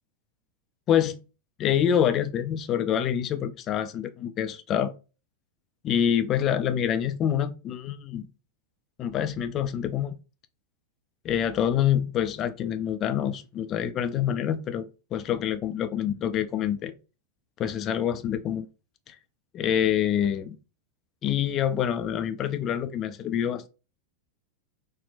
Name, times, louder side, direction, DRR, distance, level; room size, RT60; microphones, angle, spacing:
voice 1, 1.6-4.9 5.8-8.3 9.0-10.1 11.2-14.9 15.1-16.9 17.6-18.7 19.5-20.6 21.2-23.7, left 9 dB, 30° left, 0.3 m, -26 dB
4.2 x 2.0 x 2.5 m
figure-of-eight pair, 90°, 0 cm